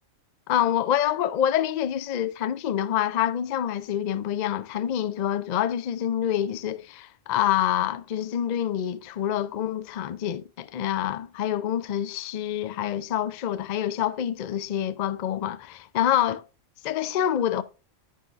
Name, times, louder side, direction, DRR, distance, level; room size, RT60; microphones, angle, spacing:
voice 1, 0.5-16.4 16.8-17.6, left 10 dB, 75° left, 0.4 m, -26 dB
9.8 x 9.3 x 2.4 m
omnidirectional pair, 1.4 m